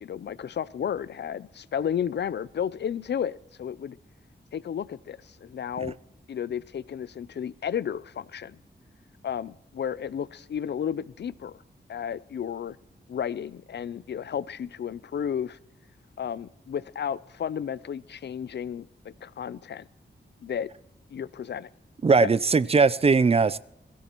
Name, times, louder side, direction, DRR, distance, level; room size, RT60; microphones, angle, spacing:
voice 1, 0.0-4.0 4.5-6.0 6.3-8.6 9.2-11.6 11.9-12.8 13.1-15.6 16.2-19.9 20.4-20.7 21.1-21.7 22.2-22.3, left 8 dB, 65° left, 19 dB, 0.4 m, -32 dB
voice 2, 22.0-23.6, right 4 dB, 30° right, 18 dB, 0.4 m, -20 dB
21.5 x 16.0 x 3.0 m, 0.86 s
wide cardioid pair, 100°, 19 cm